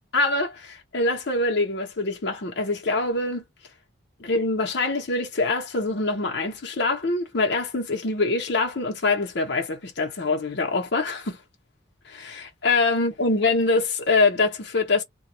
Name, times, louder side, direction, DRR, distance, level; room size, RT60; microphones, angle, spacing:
voice 1, 0.1-3.4 4.2-11.4 12.1-15.0, left 3 dB, 65° left, 0.7 m, -24 dB
2.2 x 2.1 x 2.7 m
head